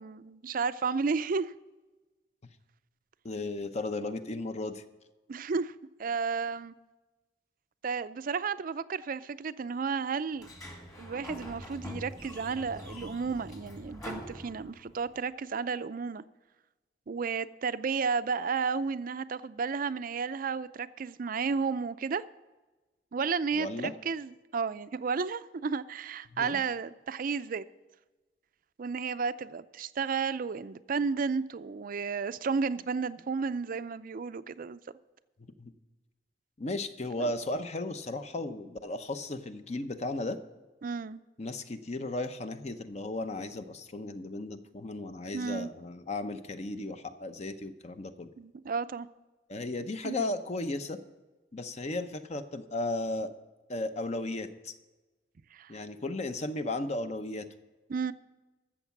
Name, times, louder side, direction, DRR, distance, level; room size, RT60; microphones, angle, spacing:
voice 1, 0.0-1.5 5.3-5.7 6.0-6.7 7.8-10.5 11.0-16.2 17.1-22.2 23.1-27.6 28.8-34.8 37.2-37.3 40.8-41.2 45.3-45.7 48.4-49.1 50.0-50.3 55.5-55.7 57.9-58.1, right 5 dB, 50° right, 0.4 m, -32 dB
voice 2, 3.2-4.8 23.5-23.9 26.3-26.6 35.6-35.7 36.6-40.4 41.4-48.3 49.5-51.0 51.5-53.3 53.7-54.7 55.7-57.5, left 2 dB, 40° left, 0.7 m, -35 dB
Sliding door, 10.3-15.1, equal, 20° left, 2.0 m, -44 dB
14.0 x 7.2 x 6.0 m
head